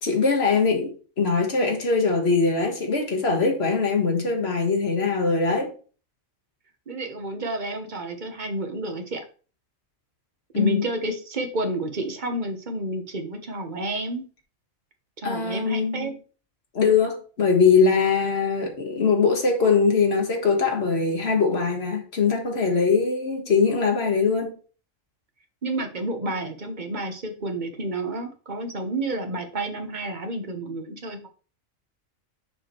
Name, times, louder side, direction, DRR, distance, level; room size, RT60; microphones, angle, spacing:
voice 1, 0.0-5.7 10.5-10.8 15.2-16.1 16.7-24.5, left 5 dB, 50° left, 1.7 m, -22 dB
voice 2, 6.9-9.2 10.5-14.2 15.2-16.1 25.6-31.3, right 2 dB, 35° right, 1.2 m, -30 dB
6.8 x 4.9 x 4.4 m
omnidirectional pair, 1.4 m